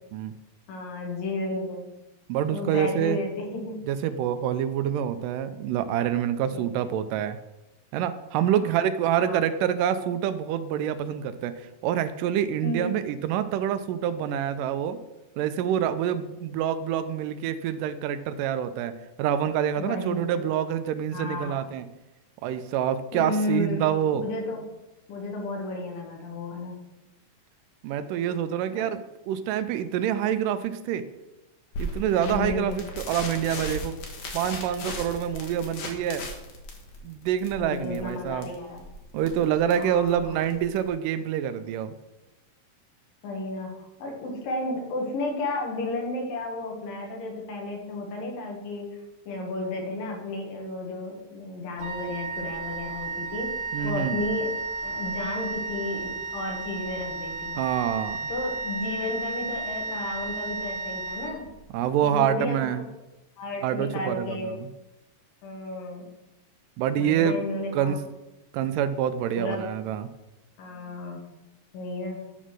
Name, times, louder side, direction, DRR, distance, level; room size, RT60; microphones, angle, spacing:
voice 1, 0.7-1.9 2.5-3.8 6.5-6.6 8.4-8.8 9.2-9.4 12.6-12.9 19.8-20.2 21.1-21.6 23.1-23.8 24.1-24.6 25.1-26.8 28.7-28.9 32.2-32.8 37.6-38.8 39.8-40.4 43.2-48.9 49.3-53.5 53.8-54.5 54.8-57.7 58.3-61.5 62.0-62.8 63.4-64.5 65.4-66.0 67.0-68.0 69.4-69.7 70.6-71.2 71.7-72.2, left 2 dB, 85° left, 1 dB, 3.3 m, -33 dB
voice 2, 2.3-3.2 3.9-7.4 7.9-15.0 15.4-18.9 19.2-21.9 22.4-24.2 27.8-29.0 29.3-31.1 31.8-34.0 34.3-36.2 37.0-38.5 39.1-41.9 53.7-54.2 57.6-58.2 61.7-62.8 63.6-64.7 66.8-67.4 67.7-68.0 68.5-70.1, right 9 dB, 80° right, 11 dB, 2.1 m, -26 dB
sound 1, 31.7-40.9, left 1 dB, 60° left, 2.5 m, -37 dB
Wind instrument woodwind instrument, 51.8-61.9, right 3 dB, 60° right, 1.4 m, -33 dB
10.0 x 4.2 x 6.2 m, 0.98 s
omnidirectional pair, 3.9 m